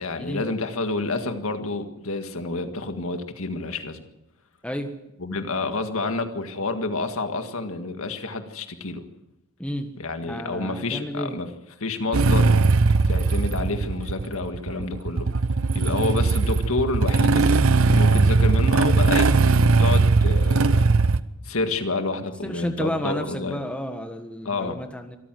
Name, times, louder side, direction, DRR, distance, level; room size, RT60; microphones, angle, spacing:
voice 1, 0.0-4.0 5.2-9.0 10.0-11.5 11.8-12.6 13.1-15.3 15.7-19.3 19.8-20.9 21.4-23.6 24.5-24.8, left 3 dB, 75° left, 7 dB, 1.8 m, -29 dB
voice 2, 9.6-9.9 10.2-11.4 15.7-16.0 22.4-25.2, equal, 5° left, 6 dB, 1.5 m, -31 dB
Motorcycle / Engine starting, 12.1-21.2, right 3 dB, 70° right, 0.7 m, -19 dB
25.0 x 14.0 x 7.7 m, 0.90 s
head